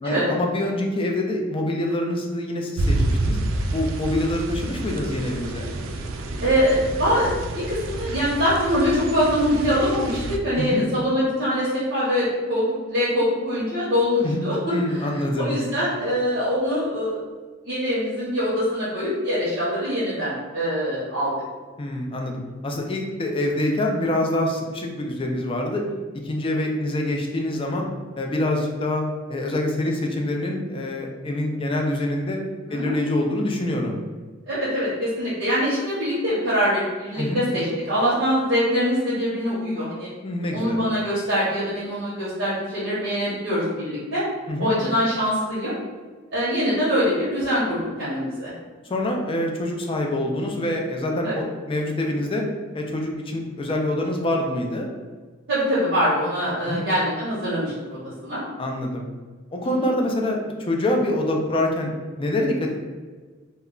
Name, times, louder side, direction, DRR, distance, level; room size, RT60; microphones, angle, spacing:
voice 1, 0.0-3.4 3.7-5.7 10.5-10.9 14.2-14.4 14.7-15.5 21.8-25.8 26.2-27.9 28.2-29.0 29.3-32.4 32.7-34.0 37.1-37.4 40.2-40.8 44.5-44.8 48.8-52.5 52.7-54.9 56.7-56.8 58.6-59.1 59.5-61.9 62.2-62.8, left 1 dB, 25° left, 1 dB, 0.4 m, -25 dB
sound 1, 2.8-10.4, right 2 dB, 85° right, 0.3 m, -28 dB
voice 2, 6.4-14.7 15.4-17.2 17.6-21.3 32.7-32.9 34.5-40.1 40.5-44.2 44.6-45.7 46.3-48.5 51.2-51.4 55.5-58.4 59.6-59.9, equal, 65° right, -10 dB, 0.8 m, -23 dB
2.2 x 2.1 x 3.6 m, 1.4 s
head